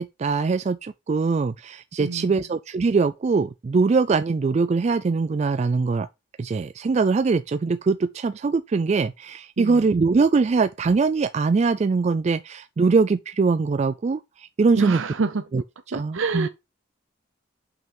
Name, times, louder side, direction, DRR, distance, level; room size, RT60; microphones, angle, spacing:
voice 1, 0.0-6.1 6.4-15.0 15.5-15.6 15.9-16.5, right 4 dB, 35° right, 0.3 m, -22 dB
voice 2, 2.0-2.4 9.6-9.9 14.7-15.4 15.9-16.5, right 4 dB, 80° right, 0.7 m, -27 dB
5.7 x 5.5 x 5.3 m
head